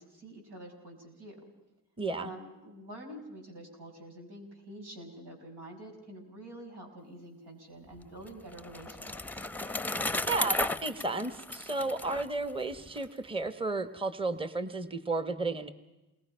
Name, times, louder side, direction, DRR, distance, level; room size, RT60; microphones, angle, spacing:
voice 1, 0.0-1.5 2.2-9.4, right 1 dB, 85° right, 1 dB, 6.7 m, -47 dB
voice 2, 2.0-2.3 10.2-15.7, right 3 dB, 15° right, 11 dB, 1.2 m, -33 dB
Bicycle, 8.0-13.0, left 2 dB, 5° left, 0.7 m, -35 dB
28.5 x 21.5 x 5.6 m, 1.0 s
cardioid pair, 85°, 40 cm